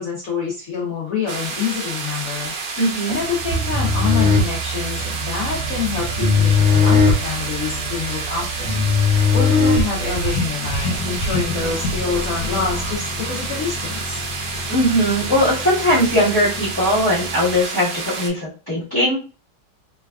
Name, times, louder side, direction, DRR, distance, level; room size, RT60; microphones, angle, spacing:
voice 1, 0.0-8.9 9.3-14.2, left 6 dB, 70° left, -3 dB, 0.8 m, -27 dB
sound 1, 1.3-18.3, right 4 dB, 70° right, 0.8 m, -30 dB
voice 2, 2.8-3.1 14.7-19.2, equal, 15° left, -10 dB, 0.7 m, -19 dB
sound 2, 3.1-17.6, left 1 dB, 85° left, 1.4 m, -31 dB
sound 3, 3.4-10.4, left 4 dB, 35° right, 0.6 m, -19 dB
3.2 x 2.3 x 2.3 m, 0.35 s
omnidirectional pair, 2.2 m